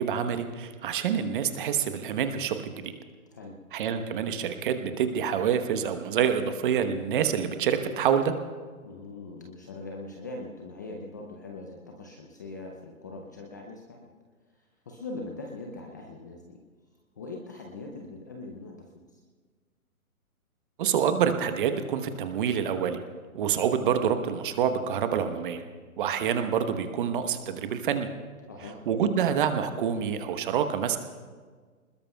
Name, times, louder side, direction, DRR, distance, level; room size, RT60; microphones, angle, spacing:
voice 1, 0.0-2.9 3.7-8.3 20.8-23.0 23.3-25.6 26.0-28.1 28.9-31.0, right 8 dB, 35° right, 8 dB, 1.1 m, -27 dB
voice 2, 8.8-14.1 14.5-16.6 17.2-19.2 28.5-28.8, left 2 dB, 15° left, 1 dB, 0.5 m, -41 dB
26.0 x 20.5 x 2.3 m, 1.5 s
hypercardioid pair, 140°, 43 cm